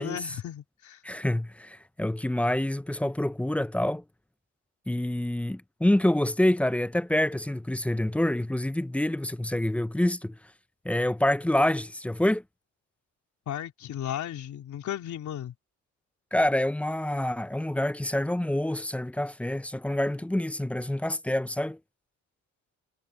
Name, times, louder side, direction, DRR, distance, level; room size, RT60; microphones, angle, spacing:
voice 1, 0.0-1.0 13.5-15.5, left 11 dB, 70° left, 4.0 m, -35 dB
voice 2, 1.0-4.0 4.9-10.4 10.8-12.4 16.3-21.8, left 1 dB, 5° left, 0.4 m, -27 dB
cardioid pair, 90°, 30 cm